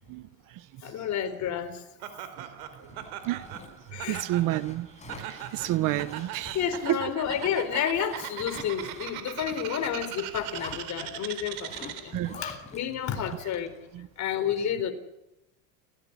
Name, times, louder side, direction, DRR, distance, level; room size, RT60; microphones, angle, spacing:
voice 1, 0.1-0.7 2.4-2.5 2.8-2.9 3.2-3.4 4.1-4.9 5.2-6.6 6.9-7.0 12.1-12.4 13.9-14.1, right 16 dB, 50° right, 1.1 m, -30 dB
voice 2, 0.8-1.8 3.9-4.2 6.5-13.7 14.2-14.9, left 9 dB, 40° left, 4.1 m, -30 dB
Laughter, 2.0-12.3, right 11 dB, 85° right, 3.9 m, -40 dB
Zipper (clothing), 2.6-13.8, left 4 dB, 15° left, 5.0 m, -47 dB
30.0 x 16.5 x 9.8 m
supercardioid pair, 130°, 43 cm